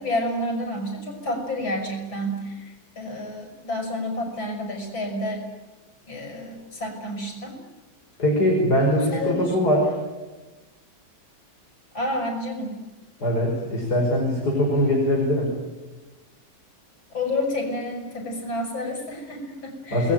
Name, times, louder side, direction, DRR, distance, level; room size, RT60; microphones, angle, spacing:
voice 1, 0.0-5.4 6.1-7.6 9.0-9.5 11.9-12.8 17.1-20.1, left 1 dB, 90° left, 4 dB, 6.8 m, -30 dB
voice 2, 8.2-10.0 13.2-15.5 19.9-20.1, left 1 dB, 55° left, 0 dB, 6.1 m, -21 dB
28.5 x 20.5 x 9.1 m, 1.2 s
omnidirectional pair, 2.1 m